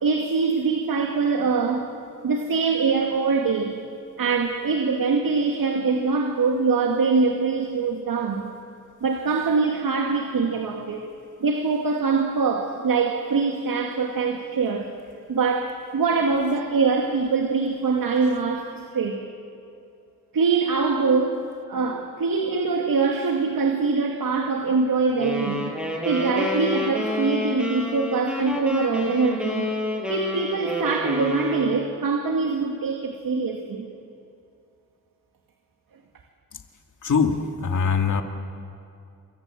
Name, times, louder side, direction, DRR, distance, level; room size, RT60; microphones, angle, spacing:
voice 1, 0.0-1.9 2.2-3.7 4.2-8.5 9.0-11.1 11.4-14.9 15.3-19.2 20.3-21.4 21.7-25.8 26.0-29.7 30.1-33.9, right 4 dB, 70° right, 3 dB, 2.2 m, -23 dB
sound 1, 25.2-32.0, left 2 dB, 5° right, 6.3 m, -29 dB
voice 2, 37.0-38.2, left 5 dB, 60° left, 4 dB, 2.3 m, -22 dB
27.5 x 25.0 x 7.8 m, 2.5 s
cardioid pair, 60°, 35 cm